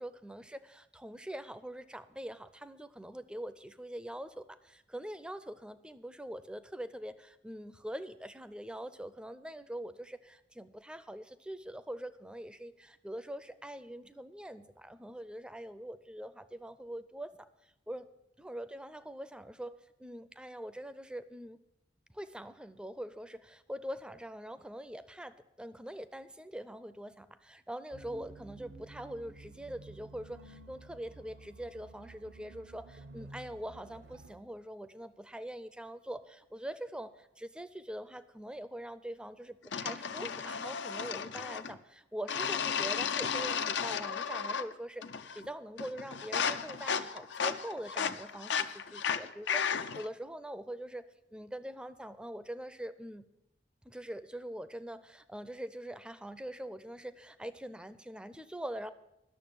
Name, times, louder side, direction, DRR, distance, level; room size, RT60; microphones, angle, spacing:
voice 1, 0.0-17.5 17.9-18.1 18.4-21.6 22.1-51.1 51.3-53.3 53.8-58.9, right 1 dB, 5° right, 13 dB, 0.5 m, -43 dB
sound 1, 27.9-34.3, right 2 dB, 85° right, 1.2 m, -52 dB
sound 2, 39.7-41.8 42.3-44.7 45.0-45.5 45.8-50.1, left 7 dB, 75° left, 0.6 m, -34 dB
12.0 x 6.8 x 8.6 m, 0.88 s
head